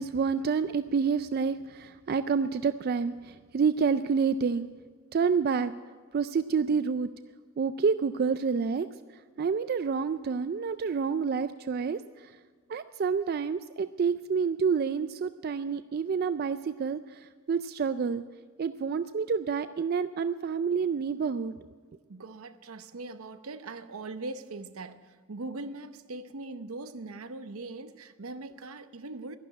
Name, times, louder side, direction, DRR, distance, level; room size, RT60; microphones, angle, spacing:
voice 1, 0.0-4.7 5.1-5.7 6.1-7.1 7.6-8.9 9.4-12.3 12.7-18.2 18.6-21.5, right 5 dB, 45° right, 12 dB, 0.3 m, -28 dB
voice 2, 22.1-29.4, right 2 dB, 80° right, 11 dB, 0.8 m, -41 dB
11.5 x 11.0 x 8.8 m, 1.5 s
head